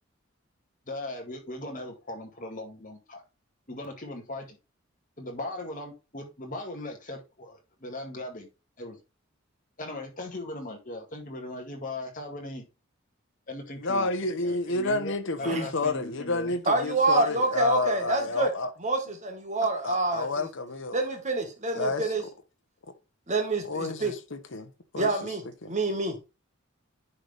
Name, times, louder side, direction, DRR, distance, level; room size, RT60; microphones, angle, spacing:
voice 1, 0.9-3.2 3.7-4.6 5.2-8.5 8.8-9.0 9.8-12.6 13.5-14.1 14.4-16.5 19.6-19.7, left 1 dB, 40° left, 2.0 m, -39 dB
voice 2, 13.8-18.7 19.8-21.0 21.7-22.1 23.7-24.7 24.9-25.1 25.6-25.7, left 2 dB, 60° left, 1.0 m, -30 dB
voice 3, 16.7-18.5 18.8-20.5 20.9-22.2 23.3-24.1 25.0-26.2, right 2 dB, 35° right, 1.7 m, -27 dB
9.7 x 4.1 x 3.5 m
head